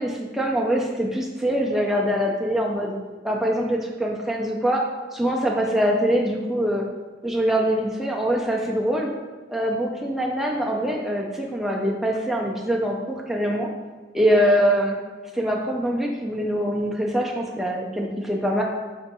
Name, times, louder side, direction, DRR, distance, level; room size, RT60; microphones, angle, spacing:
voice 1, 0.0-3.0 3.2-4.8 5.1-6.8 7.2-9.1 9.5-13.0 13.3-13.7 14.1-14.9 15.3-18.6, equal, ahead, -2 dB, 0.4 m, -23 dB
4.5 x 2.6 x 4.0 m, 1.3 s
head